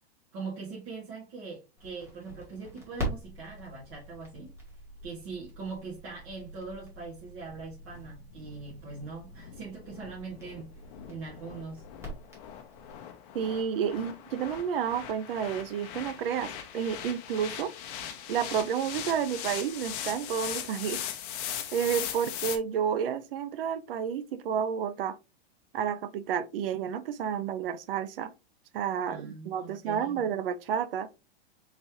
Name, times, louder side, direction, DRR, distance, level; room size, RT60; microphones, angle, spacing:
voice 1, 0.3-4.5 5.0-11.8 29.1-30.2, right 4 dB, 40° right, 1.9 m, -42 dB
Crackle, 1.8-13.0, equal, 10° right, 1.7 m, -44 dB
sound 1, 7.5-22.6, left 10 dB, 40° left, 0.8 m, -40 dB
voice 2, 13.3-17.7 18.3-21.0 21.7-25.2 25.7-28.3 28.7-31.1, right 8 dB, 60° right, 0.6 m, -30 dB
4.0 x 3.9 x 2.9 m
supercardioid pair, 155°, 31 cm